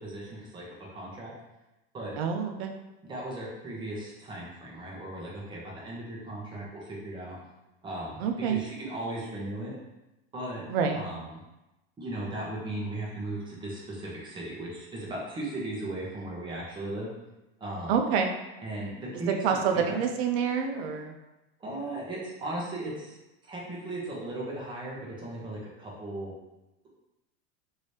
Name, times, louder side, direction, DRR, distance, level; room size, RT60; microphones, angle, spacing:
voice 1, 0.0-0.6 0.9-1.3 1.9-2.2 3.1-7.4 7.8-9.8 10.3-10.7 10.9-11.4 12.0-17.1 17.6-17.9 18.6-20.0 21.6-23.2 23.4-26.3, right 1 dB, 15° right, -5 dB, 0.8 m, -37 dB
voice 2, 2.2-2.7 8.2-8.6 10.7-11.0 17.9-18.3 19.3-21.1, right 6 dB, 80° right, 4 dB, 0.6 m, -27 dB
3.0 x 2.7 x 3.2 m, 0.98 s
supercardioid pair, 155°, 31 cm